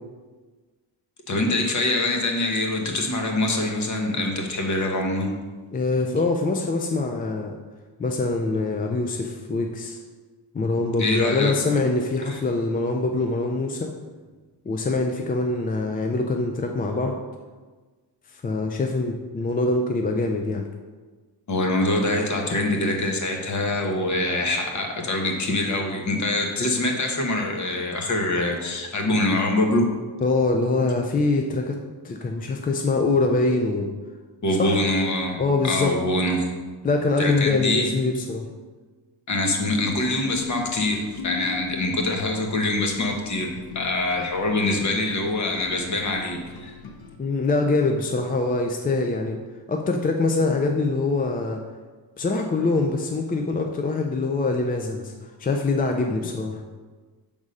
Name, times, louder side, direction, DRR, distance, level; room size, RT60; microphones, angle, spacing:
voice 1, 1.3-5.3 11.0-11.5 12.3-12.4 21.5-29.8 34.4-35.4 35.6-36.5 37.2-37.9 39.3-46.7, left 2 dB, 45° left, 2 dB, 1.1 m, -24 dB
voice 2, 5.7-7.6 8.0-10.0 10.5-13.9 14.7-17.2 18.4-20.7 30.2-31.8 32.0-33.9 34.6-34.8 35.4-36.0 36.8-38.5 47.2-49.4 49.7-51.6 52.2-56.6, left 3 dB, 25° left, 3 dB, 0.3 m, -24 dB
sound 1, 39.9-47.2, left 7 dB, 60° left, 0.8 m, -41 dB
6.4 x 3.6 x 5.3 m, 1.4 s
wide cardioid pair, 140°, 42 cm